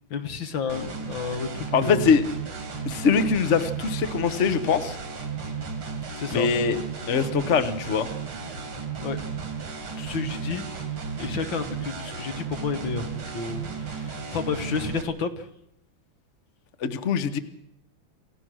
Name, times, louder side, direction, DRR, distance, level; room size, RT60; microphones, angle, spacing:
voice 1, 0.1-2.1 6.2-6.5 9.0-9.2 10.0-10.7 11.2-15.5, left 5 dB, 65° left, 8 dB, 2.1 m, -31 dB
sound 1, 0.7-15.0, right 5 dB, 85° right, 3.5 m, -34 dB
voice 2, 1.7-2.2 2.8-5.0 6.3-6.8 7.1-8.1 16.8-17.4, left 6 dB, 45° left, 10 dB, 1.1 m, -22 dB
28.0 x 16.0 x 6.3 m, 0.77 s
omnidirectional pair, 2.3 m